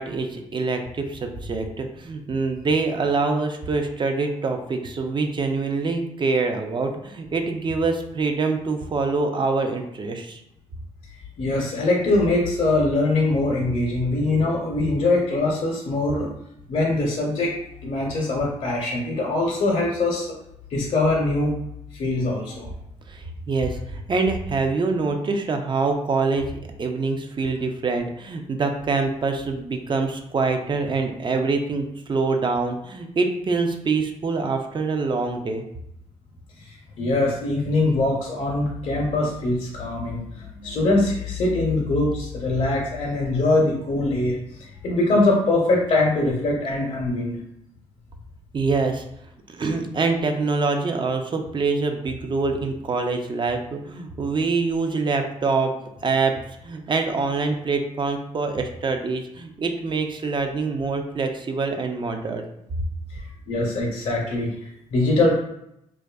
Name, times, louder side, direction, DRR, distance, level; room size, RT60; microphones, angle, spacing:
voice 1, 0.0-10.4 23.1-35.6 48.5-49.0 49.5-55.7 56.0-56.3 56.6-62.4, right 4 dB, 35° right, 5 dB, 0.4 m, -25 dB
voice 2, 11.4-16.3 16.7-17.6 17.8-20.4 20.7-21.5 22.0-22.7 36.6-47.3 63.1-65.4, left 2 dB, 55° left, -2 dB, 0.6 m, -23 dB
2.5 x 2.3 x 2.2 m, 0.79 s
supercardioid pair, 60°, 14 cm